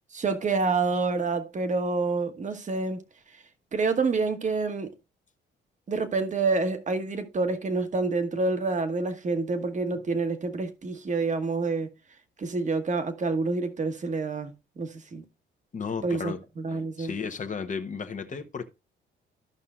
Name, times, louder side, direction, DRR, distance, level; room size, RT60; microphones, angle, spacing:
voice 1, 0.1-3.0 3.7-4.9 5.9-11.9 12.4-15.2 16.0-17.1, right 3 dB, 40° right, 1.2 m, -28 dB
voice 2, 15.7-16.4 17.0-18.6, left 5 dB, 40° left, 1.0 m, -33 dB
14.0 x 5.6 x 2.4 m
cardioid pair, 90°, 20 cm